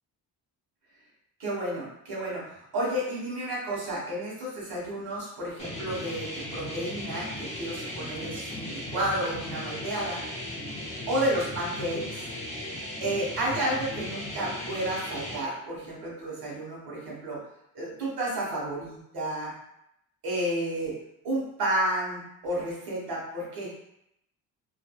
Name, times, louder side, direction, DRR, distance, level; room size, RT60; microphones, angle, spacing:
voice 1, 1.4-10.2 11.1-12.2 13.0-17.4 17.7-19.5 20.2-20.9 21.2-23.7, right 1 dB, 90° right, -4 dB, 1.2 m, -31 dB
sound 1, 5.6-15.4, left 1 dB, 20° left, 0.5 m, -37 dB
2.6 x 2.3 x 2.2 m, 0.79 s
cardioid pair, 165°, 36 cm